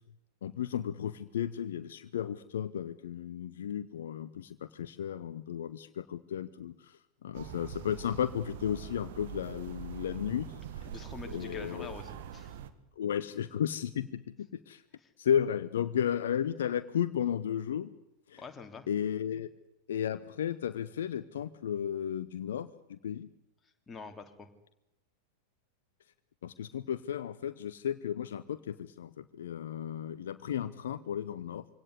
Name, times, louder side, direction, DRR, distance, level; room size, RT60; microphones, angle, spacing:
voice 1, 0.4-10.9 11.3-11.9 13.0-14.8 15.2-17.9 18.3-18.4 18.9-19.5 19.9-23.3 26.4-31.6, left 9 dB, 60° left, 13 dB, 0.9 m, -34 dB
sound 1, 7.3-12.7, right 9 dB, 55° right, 1.7 m, -44 dB
voice 2, 10.9-12.6 15.0-15.1 18.4-18.9 23.6-24.5, left 4 dB, 15° left, 4 dB, 3.1 m, -46 dB
24.5 x 17.5 x 9.8 m, 0.89 s
figure-of-eight pair, 90°, 0 cm